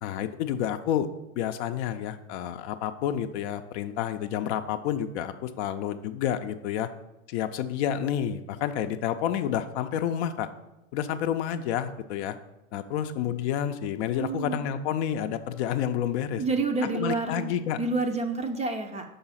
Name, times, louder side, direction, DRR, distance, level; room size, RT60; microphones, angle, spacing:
voice 1, 0.0-1.1 1.4-6.9 7.3-10.5 10.9-12.4 12.7-16.4 16.9-17.8, left 10 dB, 55° left, 9 dB, 0.6 m, -29 dB
voice 2, 14.1-14.6 16.4-17.4 17.8-19.0, right 3 dB, 15° right, 5 dB, 0.5 m, -28 dB
5.5 x 4.0 x 5.5 m, 0.93 s
hypercardioid pair, 90°, 41 cm